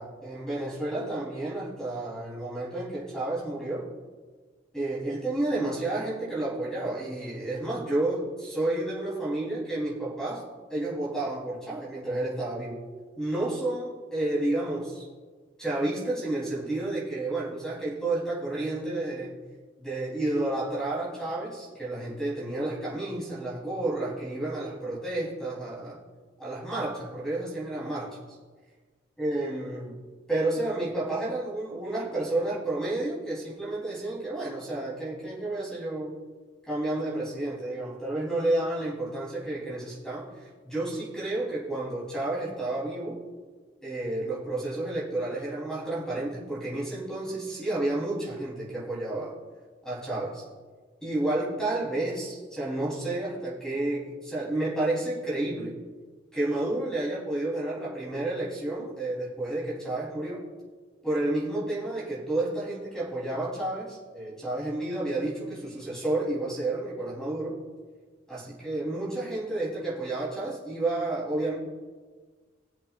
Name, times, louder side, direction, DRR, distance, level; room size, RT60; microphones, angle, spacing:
voice 1, 0.0-3.9 4.7-10.4 10.7-12.8 13.2-15.1 15.6-19.4 19.8-26.0 26.4-28.2 29.2-30.0 30.3-36.1 36.7-43.2 43.8-49.4 49.8-50.4 51.0-55.8 56.3-60.4 61.0-67.6 68.3-71.6, right 2 dB, 5° left, -7 dB, 3.5 m, -31 dB
21.0 x 7.7 x 2.5 m, 1.4 s
head